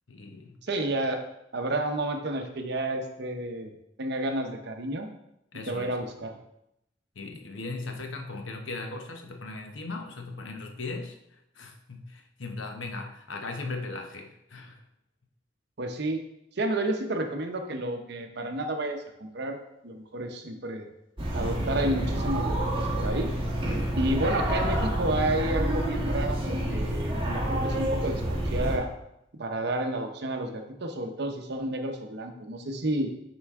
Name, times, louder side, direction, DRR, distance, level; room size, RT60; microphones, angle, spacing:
voice 1, 0.1-0.6 5.5-6.0 7.1-11.2 11.5-14.8, left 3 dB, 80° left, 4 dB, 0.9 m, -38 dB
voice 2, 0.6-1.2 1.5-3.7 4.0-5.1 5.7-6.4 15.8-16.2 16.6-20.9 21.3-23.3 23.9-28.9 29.3-33.1, right 1 dB, 60° right, 5 dB, 0.8 m, -31 dB
sound 1, 21.2-28.8, right 1 dB, 30° right, 1.3 m, -28 dB
7.9 x 4.5 x 3.6 m, 0.83 s
head